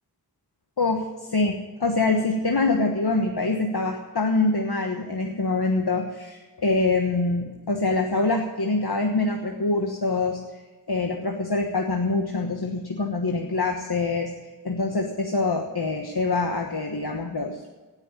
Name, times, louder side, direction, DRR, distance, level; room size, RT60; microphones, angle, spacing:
voice 1, 0.8-10.4 10.9-14.3 14.6-17.6, left 3 dB, 65° left, 3 dB, 1.3 m, -25 dB
17.5 x 6.5 x 8.6 m, 1.3 s
wide cardioid pair, 50°, 42 cm